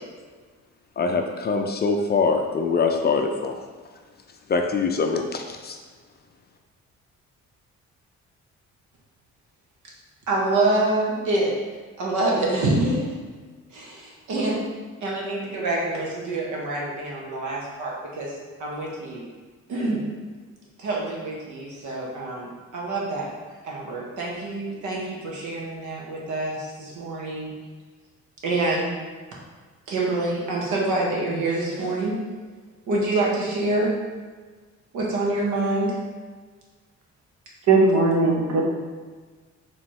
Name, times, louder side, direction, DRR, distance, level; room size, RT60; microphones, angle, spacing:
voice 1, 1.0-3.6 4.5-5.8, left 4 dB, 35° left, 4 dB, 0.4 m, -23 dB
voice 2, 10.3-11.5 12.0-13.1 13.7-14.6 15.0-18.3 18.6-19.3 19.7-20.0 20.8-23.3 23.6-27.5 28.4-28.9 29.9-32.2 32.9-34.0 34.9-36.0, right 2 dB, 80° right, -3 dB, 1.1 m, -26 dB
voice 3, 37.7-38.7, right 3 dB, 60° right, 0 dB, 0.9 m, -18 dB
4.3 x 3.1 x 3.1 m, 1.5 s
cardioid pair, 90°, 30 cm